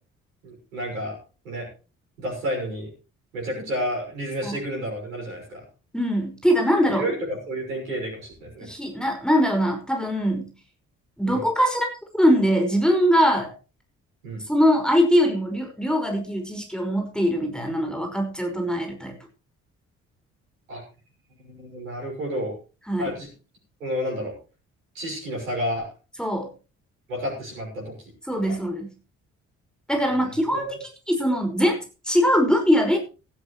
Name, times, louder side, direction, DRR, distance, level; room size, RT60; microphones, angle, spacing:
voice 1, 0.4-1.2 1.4-1.7 2.2-2.9 3.3-5.6 6.8-8.7 11.2-11.4 14.2-14.4 20.7-20.8 21.4-22.6 23.0-23.3 23.8-24.3 24.9-25.9 27.1-28.1 28.4-28.6 30.0-30.6, equal, 80° right, -1 dB, 6.2 m, -31 dB
voice 2, 5.9-7.1 8.6-10.5 11.2-11.9 12.1-13.5 14.5-19.1 22.9-23.1 26.2-26.5 28.3-28.9 29.9-30.8 31.1-31.8 32.1-33.0, equal, ahead, 3 dB, 5.4 m, -22 dB
17.5 x 13.5 x 3.2 m, 0.33 s
figure-of-eight pair, 40°, 41 cm